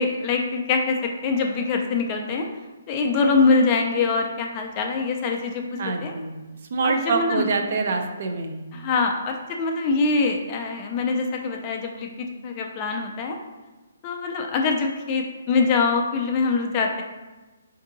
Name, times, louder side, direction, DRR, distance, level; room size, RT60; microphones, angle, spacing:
voice 1, 0.0-2.5 2.9-6.1 6.8-7.5 8.7-13.4 14.0-17.0, left 4 dB, 25° left, 2 dB, 0.4 m, -24 dB
voice 2, 5.8-6.3 6.7-8.6, right 4 dB, 50° right, 4 dB, 0.5 m, -25 dB
3.5 x 2.6 x 3.9 m, 1.2 s
hypercardioid pair, 165°, 0 cm